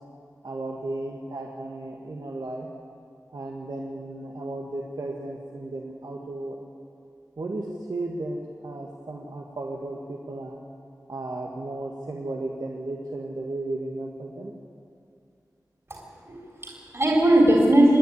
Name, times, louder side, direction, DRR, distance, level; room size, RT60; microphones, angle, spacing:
voice 1, 0.4-2.7 3.3-6.5 7.4-8.4 8.6-10.6 11.1-14.5, right 2 dB, 90° right, -1 dB, 1.7 m, -34 dB
voice 2, 15.9-18.0, right 1 dB, 40° right, -1 dB, 3.6 m, -20 dB
26.5 x 10.0 x 9.9 m, 2.3 s
wide cardioid pair, 60°, 7 cm